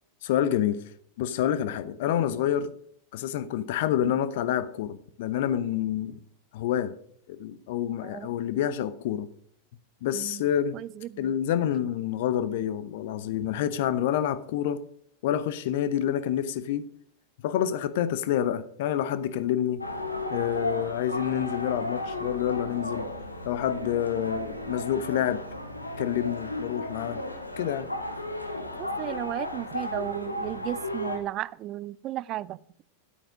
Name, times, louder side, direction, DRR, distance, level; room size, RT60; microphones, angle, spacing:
voice 1, 0.2-0.8 1.2-2.7 3.1-6.2 6.5-6.9 7.3-9.3 10.0-10.8 11.2-14.8 15.2-16.9 17.4-19.9 20.3-23.1 23.4-25.4 26.0-27.2 27.6-27.9, left 10 dB, 50° left, 0.8 m, -28 dB
voice 2, 8.0-8.4 10.1-10.4 10.7-11.3 28.8-32.6, right 14 dB, 35° right, 0.3 m, -35 dB
sound 1, 19.8-31.2, left 1 dB, 85° left, 1.2 m, -34 dB
10.5 x 8.7 x 5.0 m
figure-of-eight pair, 90°, 0 cm